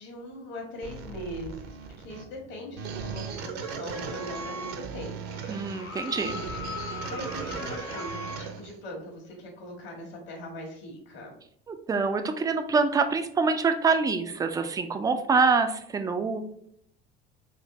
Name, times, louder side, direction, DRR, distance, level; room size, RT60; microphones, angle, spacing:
voice 1, 0.0-5.4 7.1-11.3, left 1 dB, 60° left, 0 dB, 1.6 m, -41 dB
sound 1, 0.8-8.8, right 5 dB, 50° right, 0.7 m, -37 dB
sound 2, 5.3-8.5 10.3-10.4, left 5 dB, 40° left, 0.8 m, -40 dB
voice 2, 5.5-6.4 11.7-16.4, right 4 dB, 10° right, 7 dB, 0.3 m, -25 dB
4.2 x 2.6 x 3.9 m, 0.69 s
figure-of-eight pair, 65°, 32 cm